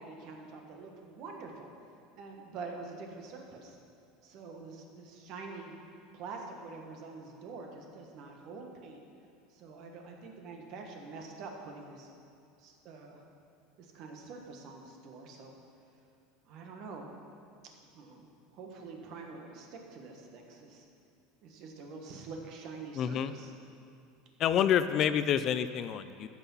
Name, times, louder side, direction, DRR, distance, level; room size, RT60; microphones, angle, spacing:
voice 1, 0.0-1.7 2.2-3.8 4.2-5.7 6.1-9.0 9.5-12.1 12.6-13.2 13.8-15.5 16.4-17.1 17.9-20.8 21.4-23.5 24.5-24.6, right 4 dB, 45° right, 2 dB, 1.5 m, -46 dB
voice 2, 23.0-23.3 24.4-26.3, left 9 dB, 35° left, 12 dB, 0.4 m, -28 dB
14.0 x 6.1 x 5.7 m, 2.4 s
supercardioid pair, 160°, 0 cm